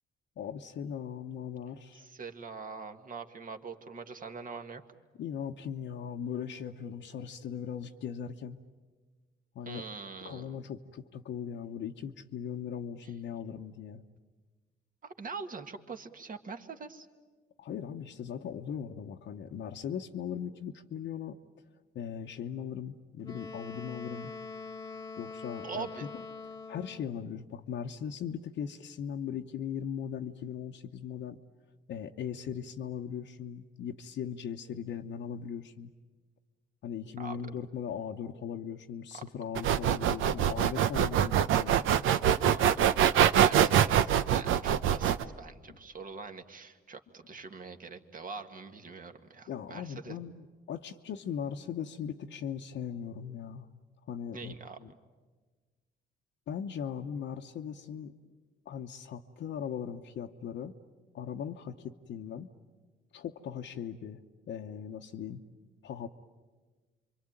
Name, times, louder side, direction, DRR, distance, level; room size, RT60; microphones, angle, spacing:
voice 1, 0.4-2.0 5.2-8.6 9.5-9.8 10.2-14.0 17.6-21.4 21.9-24.3 25.2-25.9 26.1-26.2 26.7-31.4 31.9-35.9 36.8-41.8 49.5-53.7 54.1-54.9 56.5-58.1 58.7-60.7 61.1-62.5 63.1-64.2 64.5-65.4 65.8-66.1, left 8 dB, 70° left, 2 dB, 1.0 m, -39 dB
voice 2, 1.9-4.8 9.7-10.6 13.0-13.1 15.0-17.1 25.6-26.1 37.2-37.4 42.4-42.8 43.4-50.2 54.3-55.0, right 5 dB, 45° right, 6 dB, 1.9 m, -43 dB
Wind instrument woodwind instrument, 23.2-27.2, left 4 dB, 15° left, 1.5 m, -43 dB
sound 1, 39.6-45.2, right 9 dB, 85° right, 0.8 m, -24 dB
27.0 x 24.5 x 9.0 m, 1.4 s
cardioid pair, 90°, 20 cm